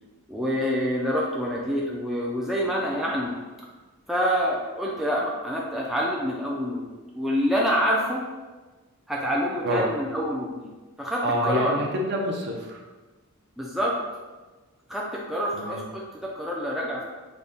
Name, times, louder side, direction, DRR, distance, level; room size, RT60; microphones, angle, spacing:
voice 1, 0.3-3.4 4.1-6.9 7.1-8.2 9.1-10.7 11.0-11.8 13.6-14.0 14.9-17.0, equal, ahead, -4 dB, 0.3 m, -27 dB
voice 2, 11.2-12.8 15.5-15.8, equal, 50° right, 0 dB, 0.5 m, -27 dB
3.9 x 2.1 x 3.4 m, 1.2 s
head